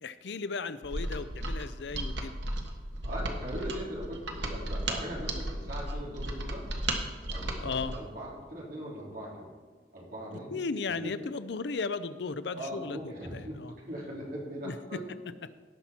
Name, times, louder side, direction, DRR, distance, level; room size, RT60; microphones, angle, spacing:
voice 1, 0.0-2.3 7.6-8.0 10.3-13.7 14.6-15.0, left 4 dB, 75° left, 14 dB, 0.5 m, -36 dB
Mechanisms, 0.8-8.0, right 1 dB, 90° right, 1.5 m, -35 dB
voice 2, 3.0-6.7 7.3-9.5 9.9-10.6 11.0-11.1 12.6-15.0, equal, 55° right, -5 dB, 3.6 m, -40 dB
17.5 x 6.0 x 4.3 m, 1.5 s
head